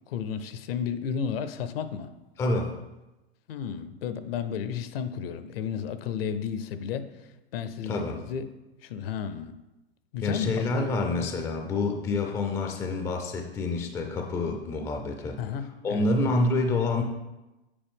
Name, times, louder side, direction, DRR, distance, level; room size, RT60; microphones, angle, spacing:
voice 1, 0.1-2.1 3.5-8.5 8.8-9.6 10.1-10.9 15.4-16.3, left 7 dB, 65° left, 11 dB, 0.7 m, -33 dB
voice 2, 2.4-2.8 7.8-8.2 10.2-15.4 15.8-17.0, left 2 dB, 10° left, 3 dB, 0.3 m, -27 dB
8.6 x 4.0 x 3.5 m, 1.0 s
hypercardioid pair, 130°, 32 cm